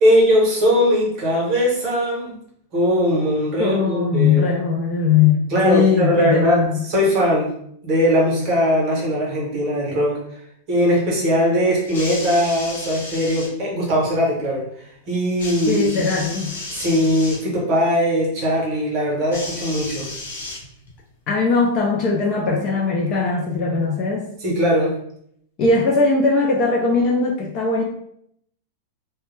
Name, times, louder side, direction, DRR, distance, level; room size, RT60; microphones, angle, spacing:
voice 1, 0.0-2.3 2.7-4.5 5.5-7.5 7.8-10.2 10.7-15.8 16.7-20.1 24.4-25.0, equal, 25° right, -4 dB, 0.8 m, -20 dB
voice 2, 3.6-6.8 15.7-16.5 21.3-24.3 25.6-27.8, left 4 dB, 25° left, -1 dB, 0.3 m, -19 dB
sound 1, 11.8-13.5 15.4-17.4 19.3-21.0 22.0-22.1, left 2 dB, 80° left, 0.6 m, -33 dB
2.2 x 2.1 x 3.0 m, 0.70 s
supercardioid pair, 180°, 0 cm